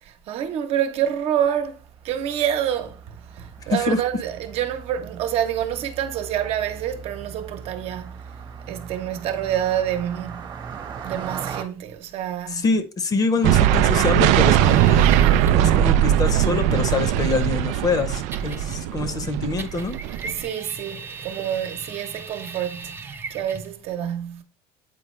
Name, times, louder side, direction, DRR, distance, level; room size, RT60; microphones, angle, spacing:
voice 1, 0.0-1.8 2.0-8.2 8.7-10.5 11.0-12.6 20.2-24.4, right 10 dB, 60° right, 1.0 m, -27 dB
Car passing by, 1.5-11.6, right 6 dB, 40° right, 1.2 m, -39 dB
voice 2, 3.7-4.0 12.5-15.1 15.4-20.0, left 4 dB, 30° left, 0.8 m, -25 dB
sound 1, 13.4-20.4, right 11 dB, 75° right, 0.4 m, -19 dB
sound 2, 14.6-15.7 18.3-19.0 19.6-23.8, right 4 dB, 20° right, 0.6 m, -38 dB
8.5 x 4.4 x 3.2 m
cardioid pair, 140°, 12 cm